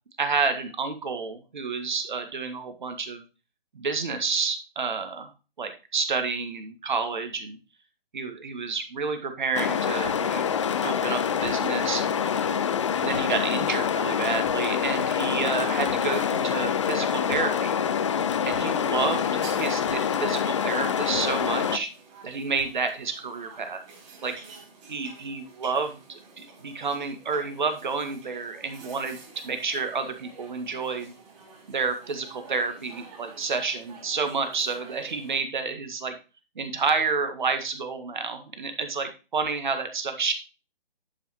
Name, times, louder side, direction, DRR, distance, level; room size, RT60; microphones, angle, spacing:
voice 1, 0.2-3.2 3.7-5.3 5.6-7.6 8.1-10.5 10.8-12.2 13.0-17.8 18.5-21.9 22.2-23.8 24.2-24.4 24.9-29.2 29.4-31.1 31.7-36.2 36.6-40.3, right 4 dB, 55° right, 7 dB, 1.9 m, -30 dB
sound 1, 9.5-21.8, left 7 dB, 30° left, 0.7 m, -26 dB
sound 2, 10.0-10.3 11.4-11.8 13.1-13.4 14.4-14.8 15.8-16.3 17.3-17.6 18.5-18.9 19.8-20.2 21.1-21.5 22.6-22.9, right 1 dB, 10° right, 1.7 m, -48 dB
sound 3, 19.0-35.4, right 4 dB, 30° right, 3.5 m, -49 dB
11.0 x 5.9 x 3.0 m, 0.30 s
figure-of-eight pair, 140°, 29 cm